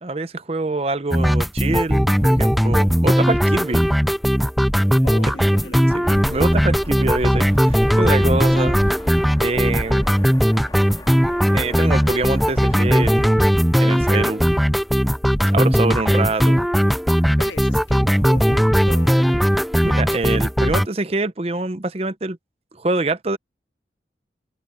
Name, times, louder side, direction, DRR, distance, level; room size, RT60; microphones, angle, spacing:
voice 1, 0.0-3.9 5.6-8.8 9.4-10.1 11.5-13.5 13.8-14.5 15.5-16.6 19.8-22.4 22.8-23.4, right 2 dB, 35° right, 0.7 m, -25 dB
sound 1, 1.1-20.9, equal, ahead, 0.3 m, -18 dB
voice 2, 5.0-6.3 16.1-16.2 17.4-19.6, left 2 dB, 85° left, 1.9 m, -38 dB
sound 2, 6.0-13.2, equal, 20° left, 3.2 m, -35 dB
head